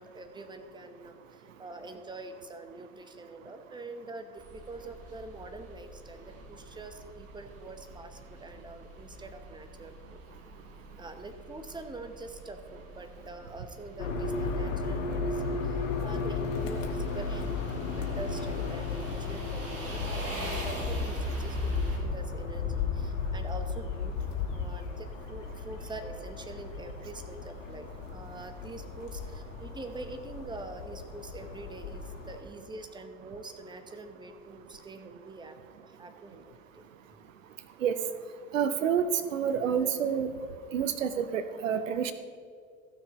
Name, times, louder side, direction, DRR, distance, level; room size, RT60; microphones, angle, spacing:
voice 1, 0.0-10.2 11.0-36.8, right 2 dB, 10° right, 7 dB, 1.1 m, -45 dB
sound 1, 4.4-22.0, right 1 dB, 35° right, 3.0 m, -42 dB
sound 2, 14.0-32.4, left 4 dB, 75° left, 1.4 m, -35 dB
voice 2, 38.5-40.3 40.7-42.1, right 7 dB, 80° right, 11 dB, 0.7 m, -28 dB
15.0 x 6.3 x 4.3 m, 2.2 s
figure-of-eight pair, 75°, 38 cm